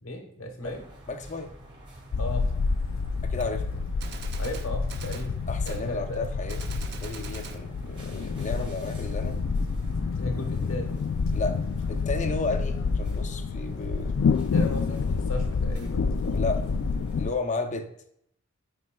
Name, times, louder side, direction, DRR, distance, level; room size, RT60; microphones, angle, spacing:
voice 1, 0.0-0.8 2.2-2.5 4.4-5.4 5.7-6.2 10.2-11.0 14.5-16.1, left 1 dB, 80° left, 4 dB, 1.2 m, -36 dB
sound 1, 0.6-17.4, right 1 dB, 25° right, 1.9 m, -48 dB
voice 2, 1.1-1.5 3.2-3.6 5.5-9.4 11.3-11.6 11.9-14.1 16.3-16.7 17.2-17.9, left 3 dB, 35° left, 6 dB, 0.7 m, -33 dB
sound 2, 2.1-17.3, left 4 dB, 65° left, 0.3 m, -28 dB
Gunshot gunfire, 3.4-3.5 4.0-5.3 5.7-5.8 6.5-7.6, right 6 dB, 55° right, 0.7 m, -43 dB
9.5 x 5.3 x 2.3 m, 0.72 s
head